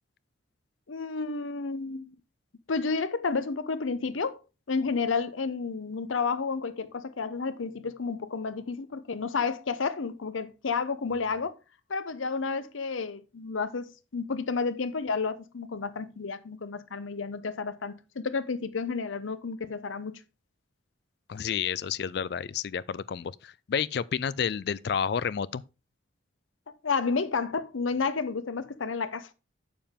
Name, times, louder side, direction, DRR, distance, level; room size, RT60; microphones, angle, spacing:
voice 1, 0.9-2.1 2.7-4.4 4.7-11.6 11.9-20.2 26.8-29.3, left 4 dB, 90° left, 0.7 m, -31 dB
voice 2, 21.3-25.6, left 7 dB, 55° left, 0.3 m, -30 dB
7.1 x 6.8 x 3.6 m
head